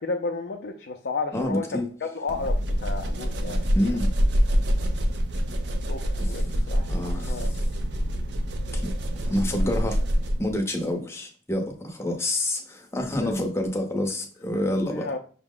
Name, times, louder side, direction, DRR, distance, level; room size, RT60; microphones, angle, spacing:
voice 1, 0.0-3.6 5.9-7.8 9.6-9.7 13.2-13.3 14.6-15.2, left 3 dB, 65° left, 0.4 m, -33 dB
voice 2, 1.3-1.9 3.7-4.1 6.9-7.5 8.7-8.9 9.3-10.0 10.4-15.1, left 1 dB, 15° left, 0.7 m, -27 dB
sound 1, 2.3-10.6, equal, 70° right, 0.5 m, -25 dB
5.7 x 2.0 x 3.7 m
head